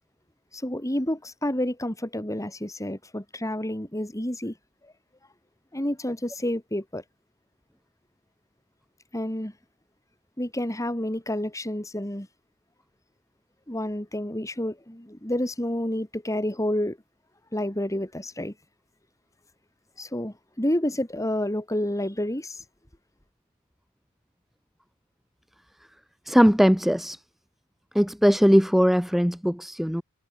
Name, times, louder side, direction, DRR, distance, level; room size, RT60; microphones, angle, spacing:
voice 1, 0.5-4.5 5.7-7.0 9.1-9.5 10.4-12.3 13.7-17.0 17.5-18.5 20.0-22.6, left 1 dB, 15° left, 3.2 m, -29 dB
voice 2, 26.3-27.2 27.9-30.0, equal, ahead, 1.3 m, -20 dB
head